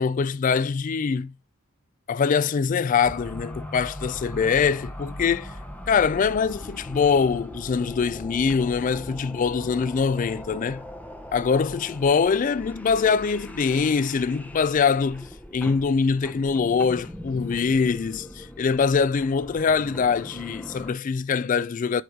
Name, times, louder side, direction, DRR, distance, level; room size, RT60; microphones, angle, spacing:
voice 1, 0.0-1.3 2.1-5.5 5.9-10.8 11.3-15.3 15.5-22.0, left 5 dB, 40° left, 0.3 m, -23 dB
sound 1, 3.0-20.9, left 1 dB, 5° left, 0.7 m, -40 dB
8.1 x 3.9 x 4.5 m
head